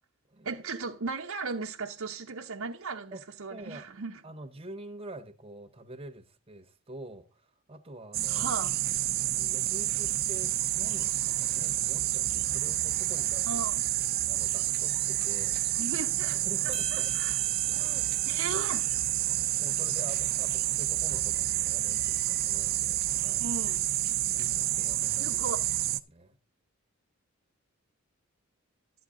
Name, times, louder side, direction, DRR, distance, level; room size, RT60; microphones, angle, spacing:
voice 1, 0.4-4.2 8.3-8.8 13.5-13.8 15.8-17.4 18.2-18.9 19.9-20.0 23.4-23.9 25.2-25.6, right 4 dB, 75° right, 0.8 m, -37 dB
voice 2, 3.5-3.9 4.2-8.5 9.3-13.7 14.3-15.6 16.3-17.1 17.7-18.1 18.5-18.6 19.6-23.5 24.3-25.5 25.9-26.4, right 1 dB, 25° right, 0.8 m, -46 dB
sound 1, 8.1-26.0, right 14 dB, 45° right, 0.5 m, -29 dB
sound 2, 16.7-21.1, left 1 dB, 90° left, 2.1 m, -50 dB
12.5 x 8.5 x 3.7 m
head